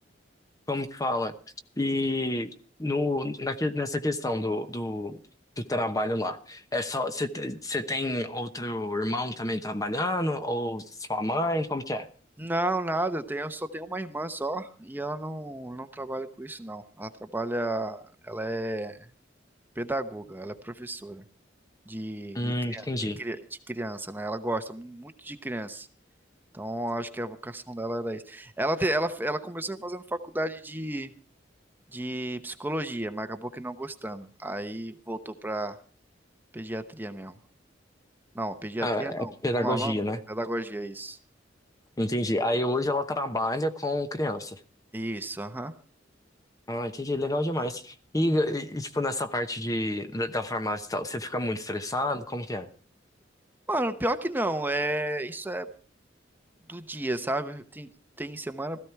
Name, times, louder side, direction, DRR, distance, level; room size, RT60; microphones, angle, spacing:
voice 1, 0.7-1.3 1.8-2.5 2.8-5.2 5.6-12.1 22.3-23.2 38.8-40.2 42.0-44.6 46.7-52.7, left 1 dB, 20° left, 9 dB, 0.9 m, -29 dB
voice 2, 12.4-19.0 19.8-21.2 21.9-22.9 23.2-23.4 23.7-25.9 26.5-31.1 31.9-35.8 36.5-37.3 38.3-39.3 39.6-40.0 40.3-41.2 44.9-45.7 47.6-47.7 53.7-55.7 56.7-57.9 58.2-58.8, right 1 dB, 10° right, 9 dB, 0.8 m, -32 dB
16.5 x 14.0 x 4.6 m, 0.42 s
head